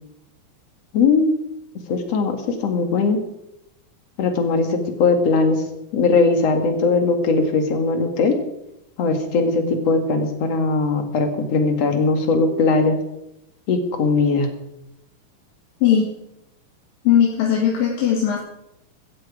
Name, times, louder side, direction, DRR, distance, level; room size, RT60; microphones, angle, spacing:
voice 1, 0.9-1.3 1.9-3.2 4.2-5.6 5.9-8.4 9.0-13.0 13.7-14.5, left 4 dB, 50° left, 5 dB, 2.8 m, -19 dB
voice 2, 17.1-18.4, left 9 dB, 80° left, -2 dB, 3.7 m, -18 dB
16.5 x 13.0 x 5.0 m, 0.84 s
omnidirectional pair, 3.9 m